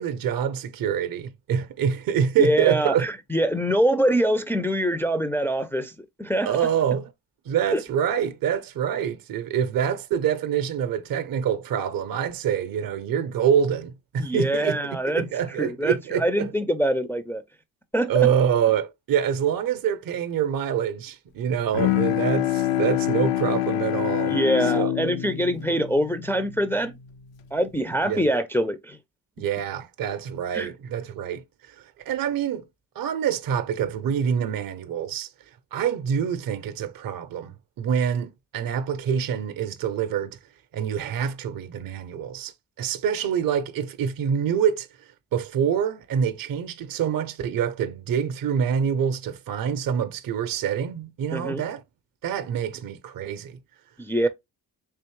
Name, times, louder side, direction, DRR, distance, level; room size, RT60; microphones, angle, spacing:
voice 1, 0.0-3.1 6.4-7.1 7.5-16.5 18.1-24.4 24.7-24.9 28.0-28.3 29.4-32.7 33.0-35.3 35.7-40.4 40.7-42.5 42.8-44.9 45.3-51.8 52.2-53.6, right 8 dB, 50° right, 0.6 m, -26 dB
voice 2, 2.4-5.9 6.2-6.5 7.7-7.8 14.2-15.2 15.6-17.4 17.9-18.1 24.3-26.9 27.5-29.0 30.5-30.7 51.3-51.6 54.0-54.3, right 1 dB, 5° left, 0.4 m, -24 dB
Bowed string instrument, 21.7-27.2, left 13 dB, 80° left, 0.6 m, -26 dB
3.5 x 3.1 x 3.0 m
supercardioid pair, 55°, 45 cm